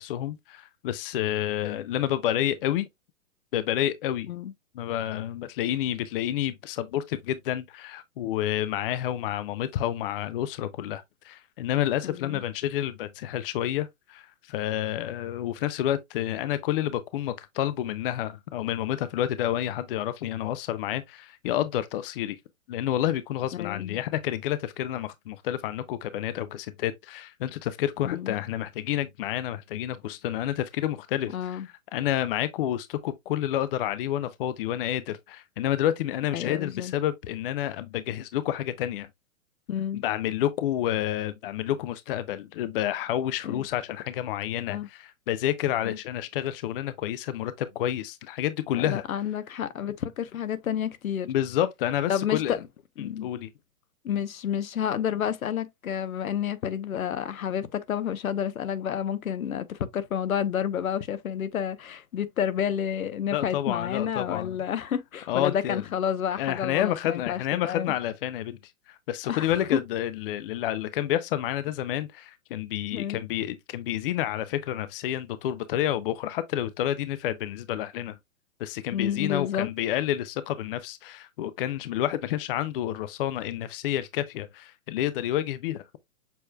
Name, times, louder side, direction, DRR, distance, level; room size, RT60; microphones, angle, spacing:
voice 1, 0.0-2.9 3.5-4.3 4.7-22.4 22.7-31.6 31.9-39.1 39.9-49.0 51.3-52.6 53.0-53.5 63.3-64.6 65.3-65.8 66.4-68.6 68.9-78.2 78.6-85.8, left 12 dB, 40° left, 0.5 m, -29 dB
voice 2, 12.0-12.4 23.5-24.0 28.0-28.3 31.3-31.7 36.3-36.9 39.7-40.0 43.4-43.6 44.7-44.9 45.8-46.0 48.8-51.3 52.1-52.6 53.0-53.3 54.0-67.9 69.3-69.8 72.9-73.2 78.9-79.7, left 9 dB, 80° left, 0.9 m, -30 dB
6.9 x 3.1 x 2.2 m
hypercardioid pair, 130°, 41 cm